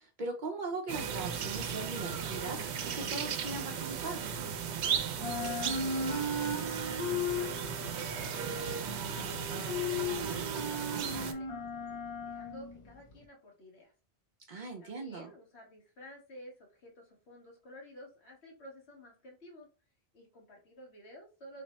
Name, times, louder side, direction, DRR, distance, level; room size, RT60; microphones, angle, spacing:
voice 1, 0.0-4.3 14.5-15.3, right 3 dB, 55° right, 2 dB, 0.7 m, -39 dB
sound 1, 0.9-11.3, right 7 dB, 90° right, 0.8 m, -36 dB
sound 2, 2.2-4.8 5.1-13.2, left 2 dB, 45° left, 0.4 m, -37 dB
voice 2, 5.7-11.7 12.2-13.9 14.8-19.7 20.1-21.6, left 1 dB, 80° left, 0 dB, 1.5 m, -53 dB
3.3 x 2.1 x 4.0 m, 0.34 s
omnidirectional pair, 1.1 m